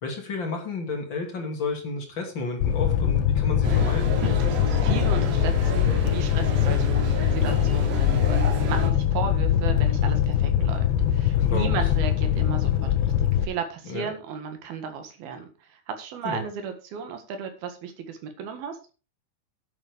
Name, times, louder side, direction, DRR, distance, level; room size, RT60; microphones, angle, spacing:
voice 1, 0.0-4.1 11.4-11.7 13.9-14.1 16.2-16.4, left 3 dB, 35° left, 2 dB, 2.7 m, -31 dB
Fire, 2.6-13.4, left 10 dB, 85° left, 3.1 m, -22 dB
sound 1, 3.6-8.9, right 3 dB, 90° right, 4.5 m, -32 dB
voice 2, 4.5-13.1 13.4-18.8, right 7 dB, 70° right, 7 dB, 3.5 m, -35 dB
10.0 x 8.5 x 5.1 m, 0.34 s
omnidirectional pair, 4.7 m